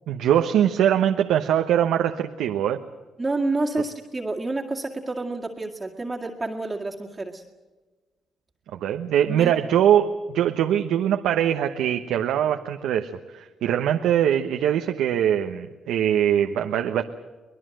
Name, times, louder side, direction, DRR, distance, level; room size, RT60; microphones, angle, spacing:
voice 1, 0.1-2.8 8.7-17.0, right 10 dB, 85° right, 5 dB, 1.0 m, -22 dB
voice 2, 3.2-7.4 9.3-9.5, right 2 dB, 20° right, -1 dB, 2.2 m, -29 dB
24.0 x 20.5 x 7.8 m, 1.3 s
cardioid pair, 90°, 0 cm